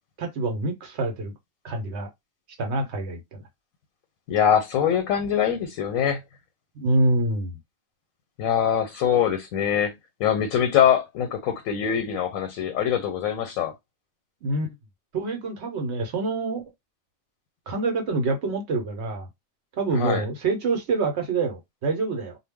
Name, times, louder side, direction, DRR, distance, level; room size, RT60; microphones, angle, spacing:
voice 1, 0.2-1.3 1.6-2.1 2.6-3.4 6.8-7.5 14.4-14.7 15.1-16.6 17.7-19.3 19.8-22.4, right 2 dB, 60° right, 1.0 m, -26 dB
voice 2, 4.3-6.2 8.4-13.7 19.9-20.2, left 9 dB, 90° left, 1.0 m, -23 dB
2.3 x 2.1 x 3.5 m
omnidirectional pair, 1.4 m